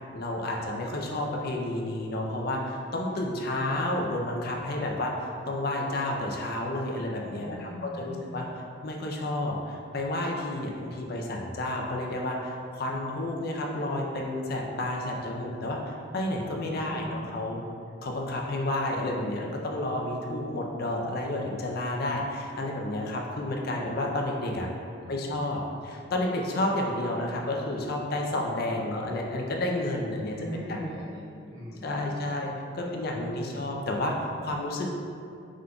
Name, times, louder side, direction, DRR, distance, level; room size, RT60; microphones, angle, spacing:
voice 1, 0.1-8.5 8.8-17.6 18.0-24.7 25.1-30.6 31.8-34.9, left 1 dB, 50° left, 0 dB, 0.4 m, -31 dB
voice 2, 7.4-8.5 16.6-17.4 25.0-25.4 30.3-32.3 32.8-33.5, equal, 75° right, -8 dB, 1.2 m, -41 dB
5.0 x 3.7 x 2.2 m, 2.5 s
head